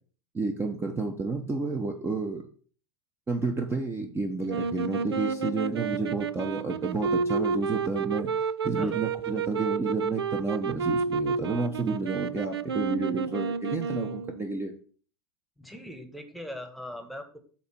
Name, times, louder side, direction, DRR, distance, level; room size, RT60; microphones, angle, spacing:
voice 1, 0.3-2.5 3.3-14.7, right 3 dB, 20° right, 4 dB, 0.9 m, -31 dB
sound 1, 4.5-14.5, right 5 dB, 90° right, 0.4 m, -30 dB
voice 2, 15.6-17.4, left 1 dB, ahead, 5 dB, 1.2 m, -40 dB
8.1 x 2.9 x 6.1 m, 0.44 s
hypercardioid pair, 85°, 13 cm